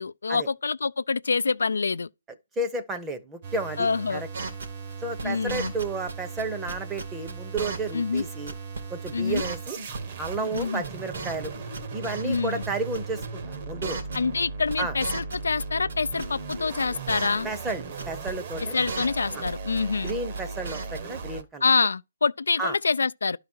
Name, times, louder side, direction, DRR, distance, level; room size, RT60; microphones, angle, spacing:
voice 1, 0.0-2.1 3.8-4.2 5.2-5.7 7.9-8.3 9.1-9.4 10.5-10.8 12.2-12.6 14.1-17.5 18.7-20.1 21.6-23.4, left 4 dB, 90° left, 0.4 m, -26 dB
voice 2, 2.6-4.3 5.0-8.5 8.9-9.8 10.2-11.5 11.9-14.0 14.8-15.0 17.4-18.7 19.3-19.4 20.0-21.7 22.6-22.8, right 3 dB, 10° right, 0.8 m, -32 dB
sound 1, 3.4-21.4, right 4 dB, 40° right, 1.1 m, -37 dB
sound 2, 4.3-6.1 6.4-7.9 8.2-8.3 8.5-8.8 9.0-9.1 9.3-10.3 10.5-11.5 11.7-12.4 12.6-12.7 12.9-13.3 13.5-13.6 13.8-14.4 14.7-15.9 16.2-17.4 17.7-17.8 18.0-18.3 18.6-19.8 20.1-20.4 20.6-21.0, right 4 dB, 75° right, 2.6 m, -35 dB
11.5 x 4.8 x 4.4 m
hypercardioid pair, 160°, 0 cm